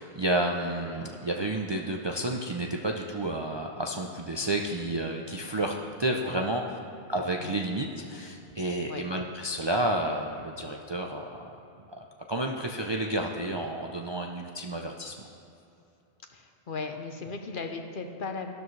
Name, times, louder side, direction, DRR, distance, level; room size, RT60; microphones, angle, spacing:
voice 1, 0.0-6.8 7.1-11.6 12.0-15.3, right 1 dB, 35° right, 1 dB, 0.4 m, -31 dB
voice 2, 16.3-18.5, left 4 dB, 55° left, 5 dB, 0.9 m, -37 dB
13.0 x 12.0 x 3.2 m, 2.8 s
omnidirectional pair, 1.1 m